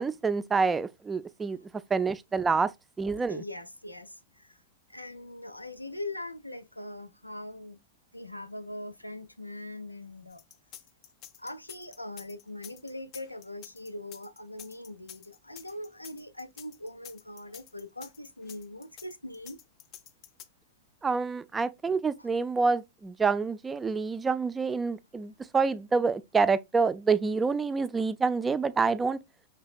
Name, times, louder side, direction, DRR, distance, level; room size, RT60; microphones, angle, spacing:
voice 1, 0.0-1.6 1.9-2.7 3.0-3.4 21.0-29.2, right 4 dB, 15° right, 0.3 m, -27 dB
voice 2, 3.3-4.6 4.9-7.8 8.1-10.4 11.4-19.6 22.2-22.3, left 1 dB, 85° left, 0.4 m, -41 dB
sound 1, 10.3-20.4, left 11 dB, 40° left, 0.6 m, -49 dB
5.6 x 3.3 x 2.4 m
figure-of-eight pair, 90°, 0 cm